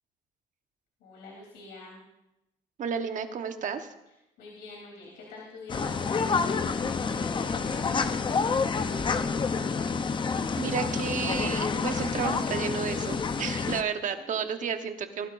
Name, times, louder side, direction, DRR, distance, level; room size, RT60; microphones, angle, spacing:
voice 1, 1.0-2.0 4.4-8.5, left 3 dB, 80° left, -4 dB, 3.3 m, -46 dB
voice 2, 2.8-3.9 10.6-15.3, right 7 dB, 50° right, 7 dB, 1.2 m, -32 dB
sound 1, 5.7-13.8, left 5 dB, 30° left, 0.7 m, -28 dB
21.0 x 12.0 x 2.6 m, 0.91 s
cardioid pair, 110°, 17 cm